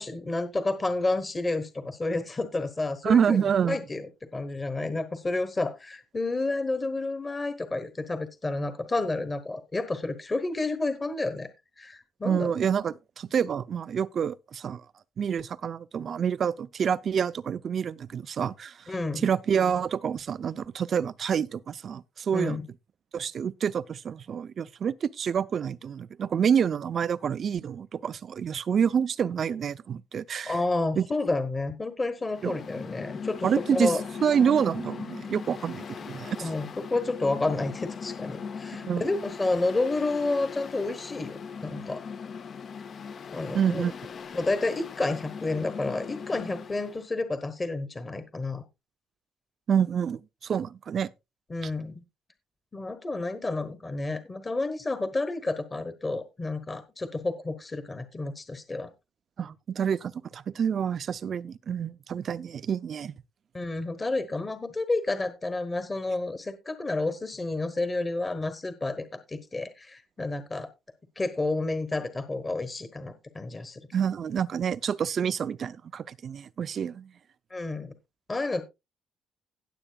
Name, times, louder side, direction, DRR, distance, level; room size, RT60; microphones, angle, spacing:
voice 1, 0.0-11.5 11.8-12.5 18.9-19.3 22.3-22.7 30.5-34.0 36.4-42.0 43.3-43.9 44.3-48.6 51.5-52.0 52.7-58.9 63.5-70.7 71.2-73.8 77.5-77.9 78.3-78.6, left 2 dB, 20° left, 1.1 m, -30 dB
voice 2, 3.0-3.8 12.2-14.8 15.2-18.9 19.2-22.6 23.1-30.6 31.0-31.1 32.4-32.5 33.4-33.9 34.2-36.5 38.8-39.0 43.5-43.9 49.7-51.1 59.4-63.1 73.9-77.1, right 7 dB, 45° right, 0.5 m, -27 dB
Mechanical fan, 32.2-47.0, left 6 dB, 40° left, 0.6 m, -39 dB
17.0 x 7.8 x 2.3 m
cardioid pair, 145°, 0 cm